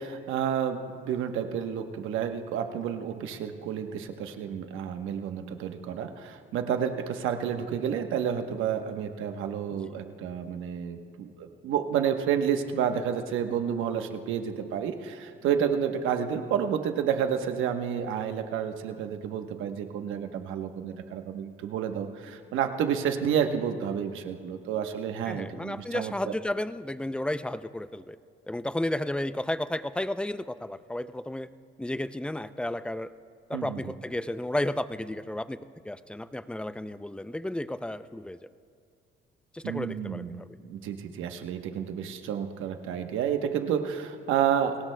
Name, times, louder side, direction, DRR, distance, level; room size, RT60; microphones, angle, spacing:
voice 1, 0.0-26.3 33.5-33.8 39.6-44.8, right 8 dB, 80° right, 6 dB, 1.1 m, -30 dB
voice 2, 25.3-28.2 28.5-31.5 31.8-33.1 33.5-38.4 39.5-40.5, left 1 dB, 5° left, 13 dB, 0.4 m, -33 dB
29.0 x 18.5 x 2.2 m, 2.3 s
cardioid pair, 90°, 20 cm